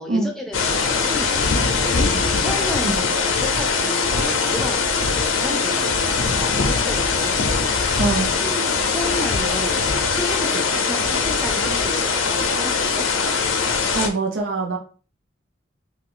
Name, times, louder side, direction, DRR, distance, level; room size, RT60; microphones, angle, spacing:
voice 1, 0.0-5.9 6.4-8.0 8.4-9.8 10.1-13.1, left 1 dB, ahead, 1 dB, 0.5 m, -32 dB
sound 1, 0.5-14.1, left 5 dB, 85° left, 0.5 m, -21 dB
voice 2, 8.0-8.3 13.9-14.8, right 3 dB, 70° right, 0 dB, 0.6 m, -23 dB
2.5 x 2.3 x 3.7 m, 0.37 s
head